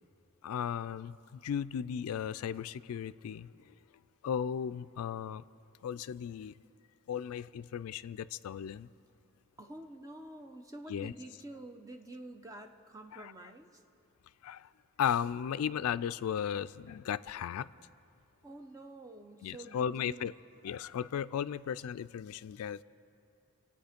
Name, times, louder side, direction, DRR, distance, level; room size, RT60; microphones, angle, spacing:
voice 1, 0.4-3.5 4.2-5.4 5.8-6.5 7.1-8.9 10.9-11.1 13.1-13.2 14.4-14.7 15.0-17.7 19.4-20.3 20.6-22.8, left 8 dB, 80° left, 14 dB, 0.3 m, -35 dB
voice 2, 9.6-13.8 18.4-20.3, right 1 dB, 15° right, 5 dB, 0.7 m, -48 dB
24.0 x 8.6 x 5.1 m, 2.5 s
head